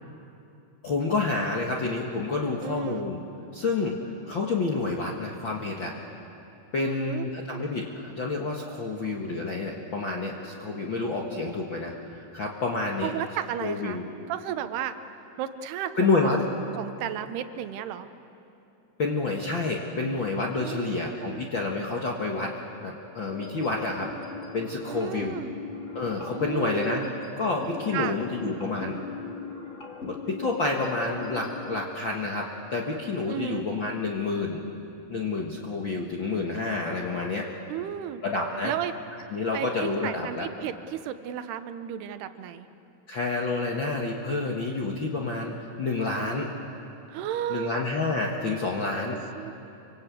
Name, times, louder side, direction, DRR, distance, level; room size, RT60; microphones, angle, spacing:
voice 1, 0.8-3.2 3.5-4.0 4.3-5.9 6.7-11.9 12.3-13.1 13.6-14.0 16.0-16.4 19.0-22.5 22.8-25.4 25.9-27.1 27.4-29.0 30.0-34.6 35.1-37.5 38.2-38.7 39.3-40.5 43.1-46.5 47.5-49.2, left 3 dB, 50° left, -1 dB, 1.4 m, -29 dB
voice 2, 2.6-3.1 6.8-7.3 13.0-14.0 14.3-15.0 15.4-16.4 16.8-18.1 20.6-21.5 24.9-25.5 26.3-27.2 27.9-28.2 33.3-33.7 37.7-38.2 38.6-38.9 39.5-42.7 47.1-47.8 49.1-49.5, right 10 dB, 85° right, 10 dB, 3.0 m, -33 dB
sound 1, 23.2-31.7, left 4 dB, 30° left, 1.4 m, -40 dB
26.0 x 25.0 x 8.4 m, 2.8 s
omnidirectional pair, 4.6 m